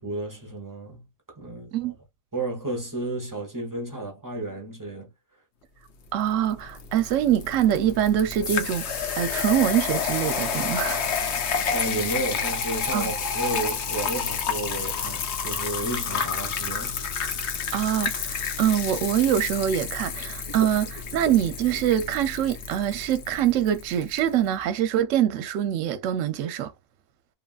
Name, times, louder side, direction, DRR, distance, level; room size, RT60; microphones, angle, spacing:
voice 1, 0.0-1.1 1.4-1.7 2.3-5.1 11.7-17.0, right 2 dB, 20° right, 0.7 m, -32 dB
voice 2, 6.1-11.0 12.9-13.1 17.7-20.9 21.1-26.7, right 10 dB, 70° right, 0.9 m, -24 dB
sound 1, 6.3-24.3, left 6 dB, 60° left, 0.8 m, -30 dB
3.1 x 2.5 x 2.3 m
omnidirectional pair, 1.5 m